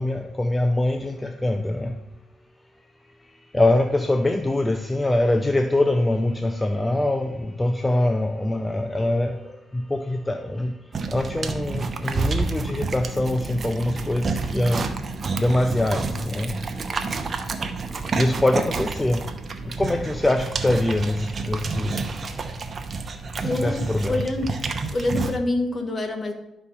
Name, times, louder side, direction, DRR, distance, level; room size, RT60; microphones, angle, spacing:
voice 1, 0.0-1.9 3.5-9.4 9.9-10.7 11.1-14.9 15.4-16.5 18.1-19.2 19.8-21.2 21.5-22.0 23.5-24.3, left 1 dB, 15° left, 6 dB, 0.5 m, -23 dB
sound 1, 10.9-25.4, right 4 dB, 40° right, 0.8 m, -29 dB
voice 2, 23.4-24.6 24.9-26.3, left 2 dB, 35° left, 5 dB, 1.5 m, -26 dB
11.0 x 4.4 x 5.6 m, 0.91 s
cardioid pair, 90°, 0 cm